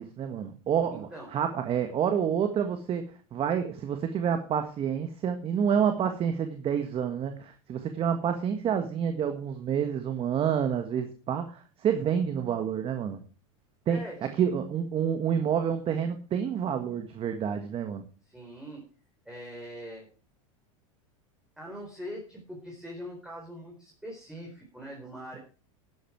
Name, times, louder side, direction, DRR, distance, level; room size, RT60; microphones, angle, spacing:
voice 1, 0.0-13.2 13.9-14.0 14.4-18.0, right 8 dB, 35° right, 7 dB, 1.6 m, -28 dB
voice 2, 0.9-1.3 13.9-14.3 18.2-18.8 19.2-20.1 21.6-25.4, equal, 5° right, -1 dB, 4.5 m, -42 dB
12.0 x 10.5 x 4.7 m, 0.38 s
hypercardioid pair, 110°, 17 cm